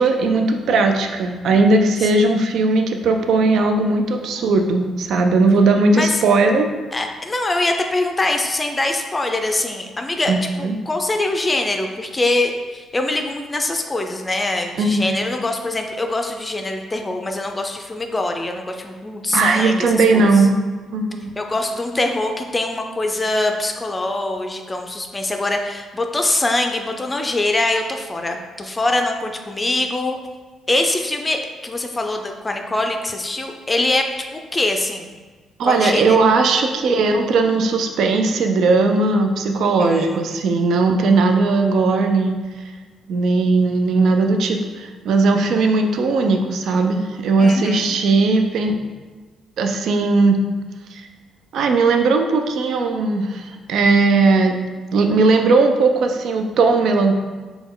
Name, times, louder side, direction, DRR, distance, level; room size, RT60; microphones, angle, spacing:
voice 1, 0.0-6.7 10.3-10.8 14.8-15.3 19.3-20.6 20.9-21.4 35.6-42.4 43.1-48.8 49.6-50.4 50.9-51.1 51.5-54.6 54.9-57.2, right 3 dB, 75° right, 5 dB, 0.4 m, -17 dB
voice 2, 2.0-2.3 5.9-6.2 6.9-20.5 21.4-30.2 30.7-34.1 34.3-35.1 35.6-36.2 39.8-40.4 47.4-48.0, left 2 dB, 20° left, 4 dB, 0.4 m, -23 dB
4.1 x 2.2 x 3.8 m, 1.4 s
cardioid pair, 90°, 0 cm